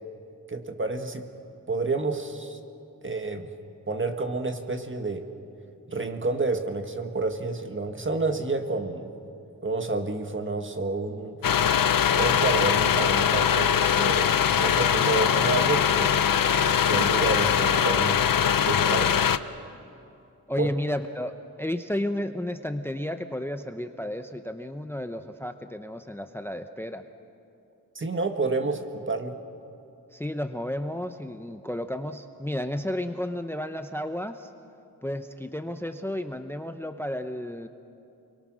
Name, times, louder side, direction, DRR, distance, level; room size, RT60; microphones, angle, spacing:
voice 1, 0.5-1.3 1.7-2.6 3.0-3.5 3.9-5.3 5.9-9.1 9.6-11.4 12.1-14.3 14.6-16.2 16.9-19.2 20.6-20.7 27.9-29.4, right 3 dB, 35° right, 6 dB, 1.7 m, -29 dB
sound 1, 11.4-19.4, left 8 dB, 75° left, 0.7 m, -22 dB
voice 2, 20.5-21.3 21.6-27.0 30.1-34.5 35.0-37.7, left 1 dB, 5° left, 8 dB, 0.8 m, -32 dB
30.0 x 23.0 x 6.3 m, 2.7 s
wide cardioid pair, 125°, 34 cm